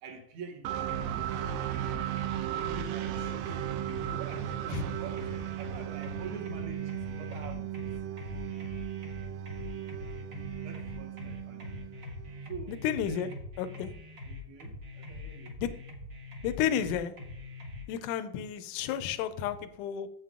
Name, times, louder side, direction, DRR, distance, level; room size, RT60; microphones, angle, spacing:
voice 1, 0.0-1.3 2.3-3.5 4.1-7.9 10.6-11.8 12.5-12.8 13.1-13.3 14.3-15.6, right 5 dB, 60° right, 4 dB, 2.3 m, -46 dB
sound 1, 0.6-12.4, right 12 dB, 80° right, 2.1 m, -36 dB
sound 2, 0.9-17.8, left 2 dB, 45° right, 1.5 m, -43 dB
voice 2, 12.7-13.3 13.6-13.9 15.6-15.7 16.4-17.1 17.9-20.1, left 9 dB, 80° left, 11 dB, 1.9 m, -31 dB
7.8 x 7.5 x 3.6 m, 0.76 s
omnidirectional pair, 4.2 m